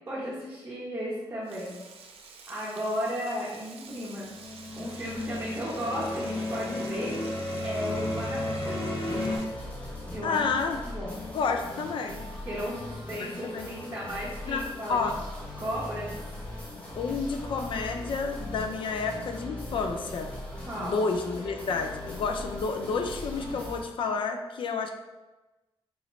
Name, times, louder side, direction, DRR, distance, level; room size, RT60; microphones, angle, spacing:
voice 1, 0.1-1.8 2.5-4.3 4.7-7.2 7.6-8.8 10.1-10.4 10.8-11.2 12.4-15.0 15.6-16.1 20.7-21.1, equal, 25° right, -7 dB, 0.9 m, -34 dB
Frying (food), 1.4-9.4, right 4 dB, 80° right, 0.5 m, -49 dB
sound 1, 4.3-9.4, left 1 dB, 40° left, 0.9 m, -33 dB
sound 2, 9.0-23.8, left 1 dB, 15° left, 1.0 m, -40 dB
voice 2, 10.2-10.8 11.3-12.3 13.4-13.7 14.4-15.2 17.0-20.3 20.8-24.9, left 4 dB, 60° left, 5 dB, 0.4 m, -30 dB
3.9 x 2.9 x 3.1 m, 1.1 s
wide cardioid pair, 125°, 10 cm